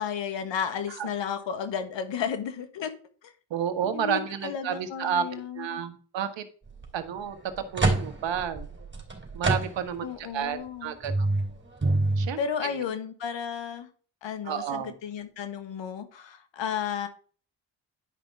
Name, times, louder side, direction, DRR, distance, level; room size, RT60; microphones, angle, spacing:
voice 1, 0.0-2.9 3.2-3.3 3.9-5.8 10.0-11.0 12.4-13.9 14.2-17.1, left 7 dB, 70° left, 9 dB, 1.6 m, -33 dB
voice 2, 3.5-6.4 6.9-7.4 7.7-8.7 9.3-11.1 12.2-12.8 14.4-14.9, right 8 dB, 70° right, 9 dB, 1.4 m, -31 dB
sound 1, 6.7-6.9 7.4-10.1 10.5-10.6 11.0-12.3, right 2 dB, 25° right, 3.2 m, -27 dB
11.0 x 5.4 x 3.6 m, 0.41 s
supercardioid pair, 55°, 46 cm